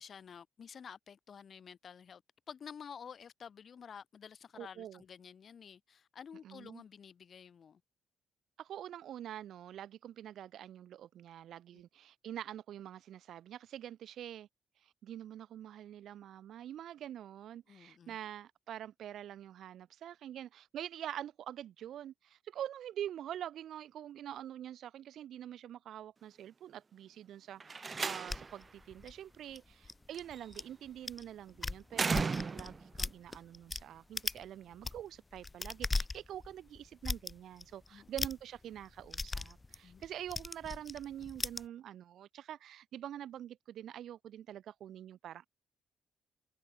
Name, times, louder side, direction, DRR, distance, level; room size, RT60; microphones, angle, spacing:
voice 1, 0.0-2.2 2.5-7.8 17.7-18.2 37.9-38.1 39.8-40.0, left 7 dB, 50° left, 4.4 m, -51 dB
voice 2, 4.6-5.0 6.4-6.8 8.6-14.5 14.8-45.5, right 11 dB, 70° right, 3.4 m, -45 dB
Slam, 27.6-28.6 30.1-30.6 31.9-32.9, right 4 dB, 35° right, 0.8 m, -35 dB
sound 1, 28.3-30.6 31.1-31.2 31.5-33.8 34.1-34.4 34.7-41.6, left 3 dB, 20° left, 1.4 m, -39 dB
cardioid pair, 90°, 0 cm